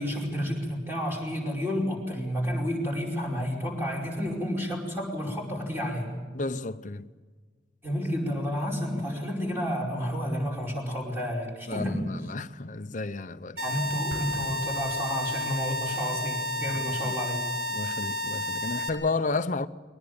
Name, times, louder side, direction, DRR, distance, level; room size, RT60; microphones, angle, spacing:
voice 1, 0.0-6.1 7.8-12.1 13.5-17.5, equal, 10° right, 5.1 m, -30 dB
voice 2, 6.3-7.1 11.7-13.6 17.0-17.2 17.7-19.7, left 3 dB, 40° left, 0.8 m, -32 dB
sound 1, 13.6-18.9, left 1 dB, 50° right, 3.6 m, -31 dB
Explosion, 14.1-15.9, right 1 dB, 70° right, 1.5 m, -44 dB
23.0 x 19.0 x 8.8 m
head